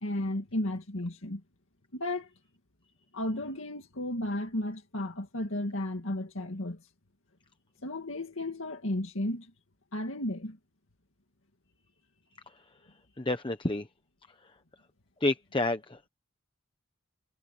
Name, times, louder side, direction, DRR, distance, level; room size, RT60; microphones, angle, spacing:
voice 1, 0.0-1.4 1.9-2.3 3.1-6.8 7.8-9.5 9.9-10.6, left 1 dB, 70° left, 2.2 m, -33 dB
voice 2, 13.2-13.9 15.2-16.0, left 2 dB, 25° left, 1.0 m, -29 dB
head